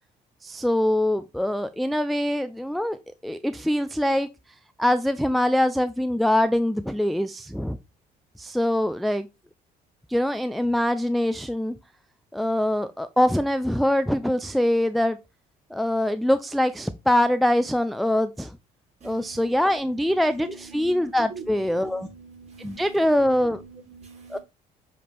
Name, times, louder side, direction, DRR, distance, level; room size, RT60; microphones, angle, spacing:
voice 1, 0.4-4.3 4.8-7.8 8.4-9.3 10.1-11.7 12.3-15.2 15.7-18.6 19.0-20.5 20.7-22.1 22.6-23.6 24.3-24.4, left 1 dB, ahead, 0.3 m, -23 dB
voice 2, 19.0-24.4, right 4 dB, 40° right, 3.4 m, -44 dB
7.5 x 4.3 x 3.4 m
cardioid pair, 110°, 17 cm